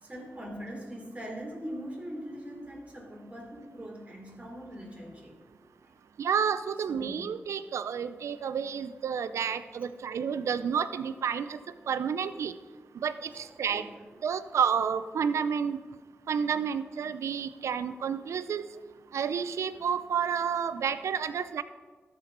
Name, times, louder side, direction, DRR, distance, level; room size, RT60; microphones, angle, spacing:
voice 1, 0.0-5.4 5.8-5.9 6.9-7.3 13.2-13.9, equal, 30° right, -1 dB, 3.1 m, -42 dB
voice 2, 6.2-11.5 11.9-12.5 13.0-13.1 13.6-13.8 14.2-15.8 16.3-18.6 19.1-21.6, right 7 dB, 85° right, 13 dB, 0.4 m, -30 dB
13.0 x 4.4 x 5.2 m, 1.4 s
cardioid pair, 45°, 5 cm